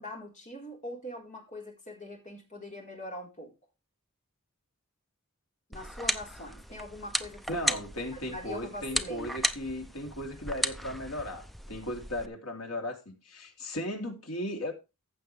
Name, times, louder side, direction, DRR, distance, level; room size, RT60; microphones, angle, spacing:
voice 1, 0.0-3.5 5.7-7.8 8.1-9.3, left 1 dB, 35° left, 4.3 m, -42 dB
sound 1, 5.7-12.3, right 1 dB, ahead, 0.6 m, -35 dB
voice 2, 7.5-14.7, left 1 dB, 70° left, 3.2 m, -36 dB
15.0 x 6.8 x 3.4 m
head